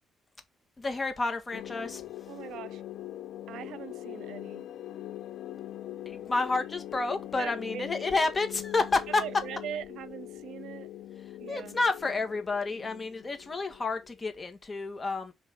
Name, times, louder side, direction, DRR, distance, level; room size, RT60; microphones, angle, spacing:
voice 1, 0.8-2.0 6.0-9.2 11.5-15.3, left 3 dB, 30° left, 1.7 m, -30 dB
sound 1, 1.5-14.3, left 13 dB, 80° left, 0.6 m, -42 dB
voice 2, 2.3-2.8 3.5-4.6 7.4-7.9 9.2-10.9 11.4-11.8, right 10 dB, 80° right, 0.7 m, -41 dB
5.8 x 3.2 x 5.2 m
cardioid pair, 90°, 0 cm